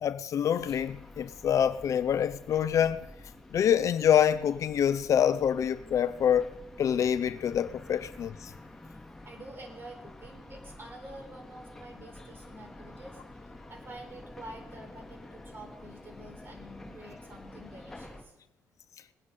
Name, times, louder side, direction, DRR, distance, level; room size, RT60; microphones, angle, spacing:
voice 1, 0.0-3.1 3.5-8.5, left 9 dB, 60° left, 0.6 m, -26 dB
sound 1, 0.6-18.2, left 2 dB, 5° left, 2.6 m, -49 dB
voice 2, 9.2-13.2 13.7-18.3, right 1 dB, 40° right, 4.3 m, -48 dB
21.0 x 9.5 x 3.9 m
cardioid pair, 80°, 6 cm